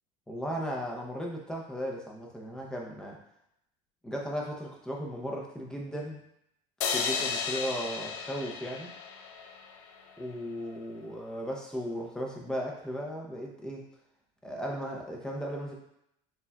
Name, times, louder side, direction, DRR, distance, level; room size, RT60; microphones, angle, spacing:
voice 1, 0.3-3.2 4.0-6.2 6.8-8.9 10.2-13.8 14.4-15.7, equal, 5° left, -1 dB, 0.5 m, -36 dB
sound 1, 6.8-10.1, left 6 dB, 65° left, 0.5 m, -34 dB
6.9 x 2.4 x 2.2 m, 0.77 s
cardioid pair, 165°, 15 cm